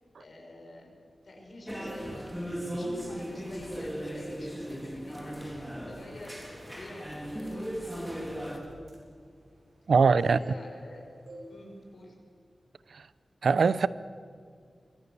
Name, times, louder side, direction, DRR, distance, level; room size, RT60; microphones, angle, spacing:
voice 1, 0.2-0.9 1.2-5.4 5.9-8.5 9.8-11.1 11.5-12.1, left 1 dB, 55° left, 6.2 m, -48 dB
sound 1, 1.6-2.4 2.7-3.8 4.2-4.5 4.9-5.2 5.8-5.9 6.3-10.1 10.4-11.0 11.3-11.5 11.8-12.1, right 1 dB, 60° right, 7.0 m, -48 dB
sound 2, 1.7-8.6, equal, ahead, 3.5 m, -37 dB
voice 2, 9.9-10.4 12.9-13.0 13.4-13.9, right 5 dB, 75° right, 0.7 m, -21 dB
27.5 x 24.0 x 6.9 m
wide cardioid pair, 135°, 0 cm